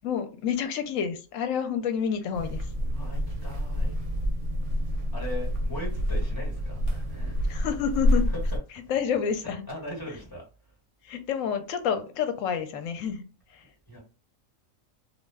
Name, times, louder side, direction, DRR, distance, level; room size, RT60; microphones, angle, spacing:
voice 1, 0.0-2.7 7.5-8.2 8.9-9.6 11.0-13.2 13.5-13.6, left 7 dB, 75° left, 0.9 m, -29 dB
sound 1, 2.3-8.6, equal, 70° right, 0.9 m, -28 dB
voice 2, 2.8-3.9 5.1-7.4 8.1-8.4 9.7-10.4 13.9-14.0, equal, 15° left, 1.2 m, -39 dB
2.4 x 2.2 x 3.3 m
omnidirectional pair, 1.4 m